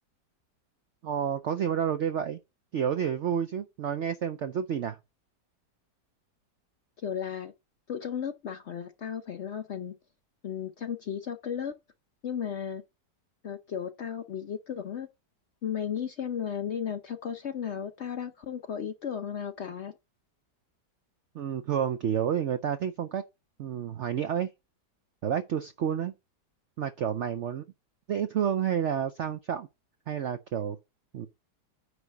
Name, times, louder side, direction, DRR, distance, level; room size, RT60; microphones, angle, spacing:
voice 1, 1.0-2.4 2.7-5.0 21.3-23.2 23.6-24.5 25.2-26.1 26.8-27.6 28.1-29.7 30.1-30.8 31.1-31.3, right 8 dB, 70° right, 0.6 m, -29 dB
voice 2, 7.0-7.5 7.9-9.9 10.4-11.7 12.2-12.8 13.4-15.1 15.6-19.9, left 8 dB, 60° left, 0.7 m, -34 dB
9.6 x 3.3 x 6.3 m
omnidirectional pair, 1.8 m